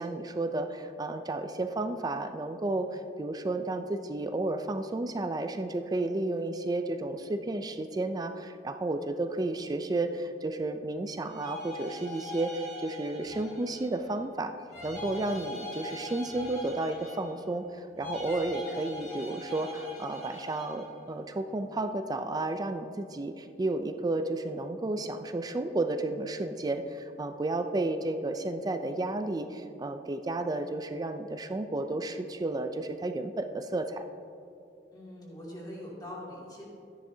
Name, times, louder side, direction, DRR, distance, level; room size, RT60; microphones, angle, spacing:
voice 1, 0.0-14.5 14.8-34.0, right 2 dB, 20° right, 8 dB, 0.4 m, -32 dB
sound 1, 11.2-14.1 14.7-17.5 18.0-20.9, left 1 dB, 40° left, 2.0 m, -42 dB
sound 2, 13.2-20.3, equal, 55° right, 2.5 m, -55 dB
voice 2, 34.9-36.7, left 1 dB, 25° left, -5 dB, 2.5 m, -42 dB
13.0 x 10.0 x 2.7 m, 2.7 s
head